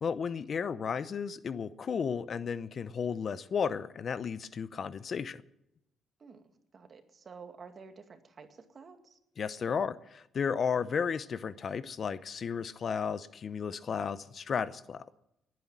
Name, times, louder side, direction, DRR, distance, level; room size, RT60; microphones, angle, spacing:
voice 1, 0.0-5.4 9.4-15.2, left 6 dB, 50° left, 15 dB, 0.8 m, -33 dB
voice 2, 6.7-9.2, right 5 dB, 45° right, 6 dB, 2.2 m, -50 dB
19.5 x 9.4 x 7.4 m, 0.85 s
cardioid pair, 90°, 0 cm